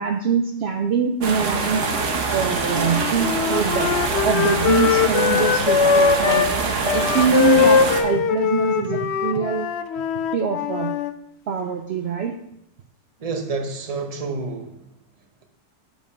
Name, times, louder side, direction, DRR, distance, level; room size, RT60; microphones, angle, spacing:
voice 1, 0.0-1.8 2.3-3.9 4.2-6.6 6.9-9.7 10.3-10.9 11.5-12.3, right 6 dB, 70° right, 4 dB, 0.6 m, -23 dB
sound 1, 1.2-8.0, right 4 dB, 55° right, 1.2 m, -24 dB
Wind instrument woodwind instrument, 2.7-6.5 6.8-11.1, left 7 dB, 70° left, 0.6 m, -21 dB
voice 2, 13.2-14.8, right 3 dB, 30° right, 4 dB, 0.7 m, -28 dB
7.4 x 5.1 x 4.9 m, 0.77 s
omnidirectional pair, 1.7 m